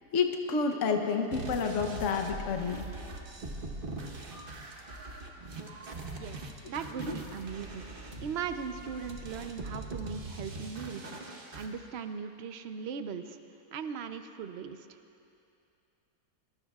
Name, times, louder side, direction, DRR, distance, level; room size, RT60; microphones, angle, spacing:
voice 1, 0.1-2.9 7.0-7.1, left 5 dB, 55° left, 4 dB, 1.1 m, -29 dB
sound 1, 1.3-11.7, right 2 dB, 35° right, 1.2 m, -42 dB
voice 2, 6.7-7.9 8.2-11.1 11.5-13.4 13.7-14.9, right 6 dB, 60° right, 8 dB, 0.7 m, -38 dB
23.0 x 20.5 x 2.4 m, 2.7 s
omnidirectional pair, 1.8 m